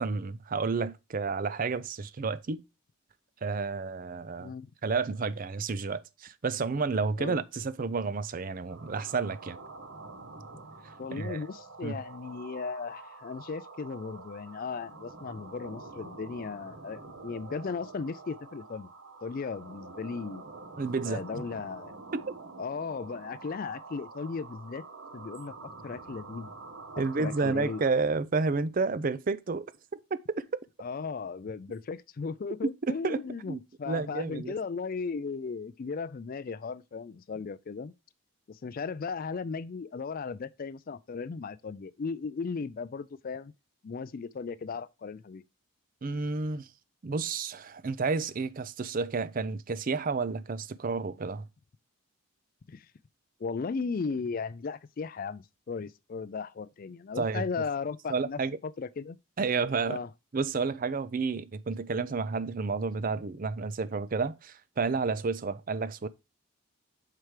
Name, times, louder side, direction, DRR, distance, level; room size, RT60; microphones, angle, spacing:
voice 1, 0.0-2.6 3.4-4.5 4.8-9.6 11.1-11.4 11.8-12.0 20.8-21.2 22.1-22.4 27.0-29.7 30.1-30.5 32.6-33.2 33.5-33.6 33.9-34.5 46.0-46.7 47.0-51.5 57.2-57.4 58.1-58.6 59.4-60.0 60.3-66.1, right 4 dB, 40° right, 0.4 m, -30 dB
voice 2, 4.4-4.7 7.2-7.4 11.0-18.9 19.2-20.4 21.1-21.9 22.6-24.8 25.1-26.5 26.9-27.8 30.8-37.9 38.5-43.5 43.8-45.4 52.7-52.9 53.4-59.2 59.9-60.1, left 5 dB, 40° left, 0.3 m, -36 dB
sound 1, 8.7-27.9, right 3 dB, 60° right, 1.1 m, -47 dB
5.8 x 4.6 x 4.8 m
head